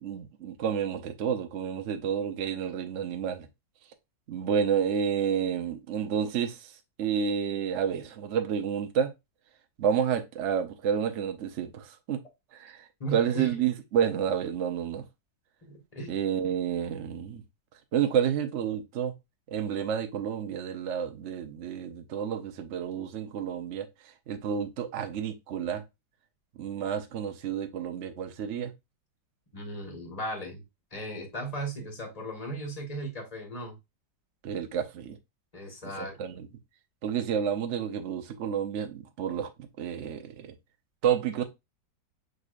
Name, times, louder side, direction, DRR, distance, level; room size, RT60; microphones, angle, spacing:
voice 1, 0.0-3.5 4.3-6.7 7.0-9.1 9.8-12.2 12.5-15.0 16.1-17.4 17.9-19.1 19.5-23.9 24.3-25.8 26.6-28.7 34.4-35.2 36.0-36.5 37.0-40.5 41.0-41.4, right 8 dB, 55° right, 0.9 m, -30 dB
voice 2, 13.0-13.5 15.6-16.2 29.5-30.6 30.9-33.8 35.5-36.2, right 2 dB, 25° left, 1.3 m, -36 dB
6.3 x 3.3 x 2.4 m
omnidirectional pair, 1.9 m